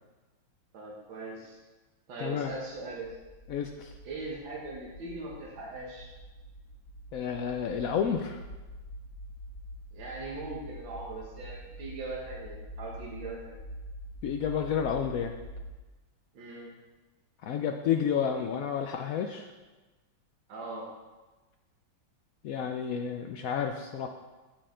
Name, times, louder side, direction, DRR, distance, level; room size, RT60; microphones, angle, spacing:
voice 1, 0.7-1.6 2.1-3.1 4.0-6.1 9.9-13.5 16.3-16.7 20.5-20.9, right 3 dB, 80° right, -4 dB, 2.1 m, -40 dB
voice 2, 2.2-2.5 3.5-3.9 7.1-8.4 14.2-15.3 17.4-19.5 22.4-24.1, left 7 dB, 80° left, 4 dB, 0.7 m, -30 dB
sound 1, 2.8-15.7, equal, 60° left, 2.6 m, -46 dB
10.0 x 8.5 x 3.8 m, 1.2 s
omnidirectional pair, 2.1 m